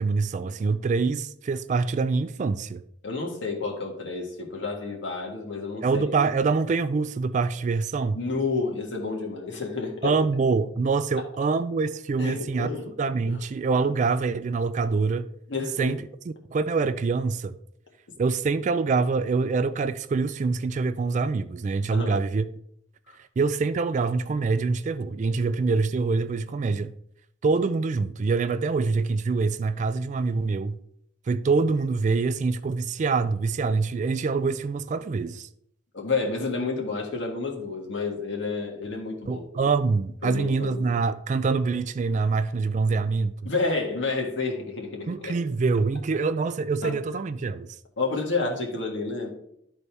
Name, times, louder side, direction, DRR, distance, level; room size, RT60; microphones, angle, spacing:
voice 1, 0.0-2.8 5.8-8.2 10.0-12.7 13.0-15.3 15.8-17.6 18.2-22.5 23.4-26.9 27.4-30.8 31.3-35.5 39.3-43.3 45.1-47.7, right 4 dB, 40° right, 0.3 m, -25 dB
voice 2, 3.0-6.1 8.1-10.1 12.2-12.9 13.3-13.4 13.7-13.9 15.5-15.9 21.9-22.2 23.1-23.2 35.9-39.6 40.2-40.8 43.4-45.3 46.8-47.0 48.0-49.3, left 3 dB, 70° left, 1.6 m, -30 dB
12.0 x 4.0 x 3.4 m
head